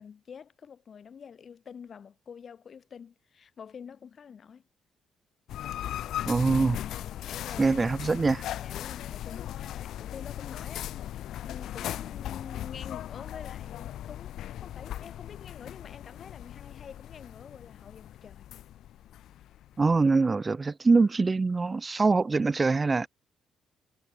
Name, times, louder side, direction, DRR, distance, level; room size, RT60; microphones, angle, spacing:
voice 1, 0.0-4.6 6.6-8.2 8.5-18.5, left 7 dB, 50° left, 2.1 m, -47 dB
sound 1, 5.5-20.1, left 12 dB, 75° left, 1.0 m, -38 dB
voice 2, 6.3-6.8 7.6-8.4 19.8-23.1, right 4 dB, 25° right, 0.3 m, -24 dB
cardioid pair, 90°, 0 cm